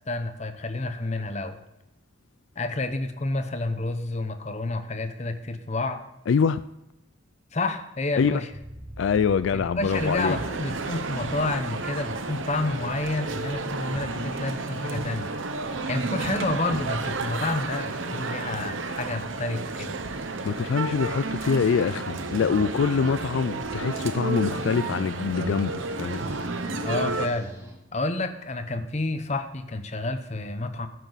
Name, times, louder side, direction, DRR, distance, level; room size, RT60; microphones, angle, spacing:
voice 1, 0.1-1.6 2.6-6.0 7.5-8.5 9.5-15.3 15.9-20.0 26.8-27.5 27.9-30.9, left 2 dB, 35° left, 0.8 m, -29 dB
voice 2, 6.3-6.6 8.2-8.3 9.0-10.4 20.4-26.2, left 6 dB, 80° left, 0.4 m, -24 dB
sound 1, 8.5-27.7, right 1 dB, 15° right, 1.9 m, -45 dB
Male speech man speaking, 9.9-27.3, right 3 dB, 90° right, 0.9 m, -32 dB
13.0 x 9.3 x 4.0 m
head